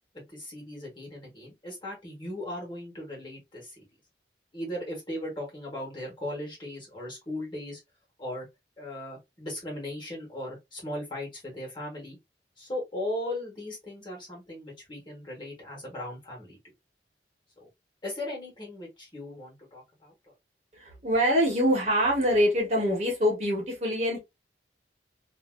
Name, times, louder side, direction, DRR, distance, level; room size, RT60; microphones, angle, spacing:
voice 1, 0.1-3.9 4.5-7.8 8.2-8.5 8.8-12.2 12.6-16.6 17.6-17.7 18.0-20.1, left 1 dB, 25° left, 1.5 m, -37 dB
voice 2, 20.7-24.2, equal, 40° right, 1.3 m, -24 dB
2.8 x 2.7 x 2.5 m
head